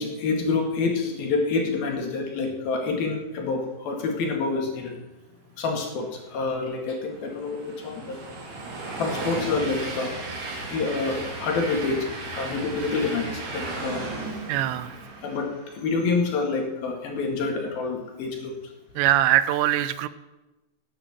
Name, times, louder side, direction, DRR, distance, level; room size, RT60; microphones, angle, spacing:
voice 1, 0.0-5.0 5.6-8.2 9.0-10.2 10.7-14.1 15.2-15.5 15.7-18.6, left 4 dB, 60° left, 2 dB, 3.9 m, -27 dB
Train, 6.4-15.9, right 2 dB, 45° right, 4.4 m, -35 dB
voice 2, 14.5-14.9 19.0-20.1, right 13 dB, 90° right, 13 dB, 3.1 m, -22 dB
17.5 x 8.9 x 7.3 m, 1.1 s
omnidirectional pair, 4.9 m